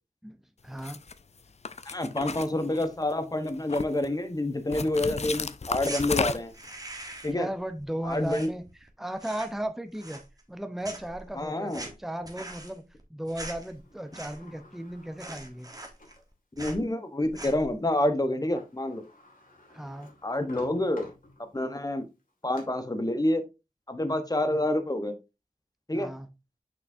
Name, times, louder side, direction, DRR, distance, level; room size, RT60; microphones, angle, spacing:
voice 1, 0.6-1.0 7.3-10.2 10.5-12.8 13.1-15.7 19.7-20.1 24.3-24.6 25.9-26.3, right 1 dB, ahead, 0.7 m, -36 dB
sound 1, 0.8-1.1 1.7-3.1 3.5-4.1 4.7-6.7, left 5 dB, 50° left, 0.4 m, -33 dB
voice 2, 1.9-6.5 7.2-7.5 8.0-8.5 11.4-11.9 16.6-19.0 20.2-21.1 21.4-22.0 22.4-23.5 23.9-25.1 25.9-26.1, left 1 dB, 25° left, 1.0 m, -28 dB
sound 2, 5.8-6.0 6.5-7.4 7.7-8.9 9.1-9.6 9.9-10.6 10.8-14.6 14.9-15.0 15.2-16.3 16.6-16.8 17.2-17.7, right 1 dB, 25° right, 1.2 m, -42 dB
Sliding door, 13.7-16.3 16.9-17.0 18.3-18.4 18.6-21.7 22.2-22.6, left 2 dB, 65° left, 2.2 m, -52 dB
6.0 x 5.8 x 2.7 m
wide cardioid pair, 75°, 15 cm